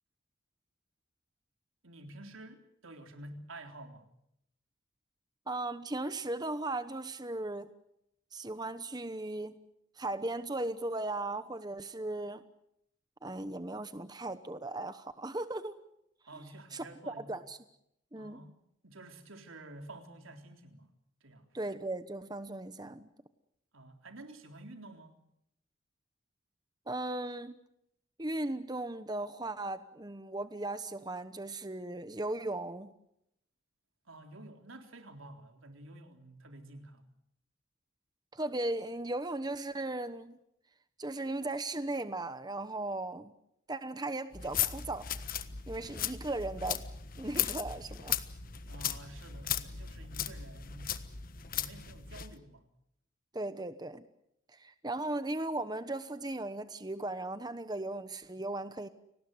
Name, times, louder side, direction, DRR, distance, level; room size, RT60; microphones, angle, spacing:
voice 1, 1.8-4.1 16.3-17.4 18.2-20.9 21.2-21.5 23.7-25.2 34.1-37.1 48.7-51.0 51.5-52.7, right 2 dB, 80° right, 5 dB, 3.8 m, -50 dB
voice 2, 5.5-7.7 8.3-9.6 10.0-12.4 13.2-15.8 16.7-17.6 18.1-18.4 21.5-23.1 26.9-27.6 28.2-32.9 38.3-40.4 41.0-43.3 43.7-45.1 45.7-46.8 47.2-48.2 53.3-54.1 54.5-58.9, right 2 dB, 20° right, 11 dB, 1.0 m, -37 dB
sound 1, 44.3-52.3, left 9 dB, 45° left, 1.4 m, -37 dB
30.0 x 19.5 x 8.0 m, 0.78 s
head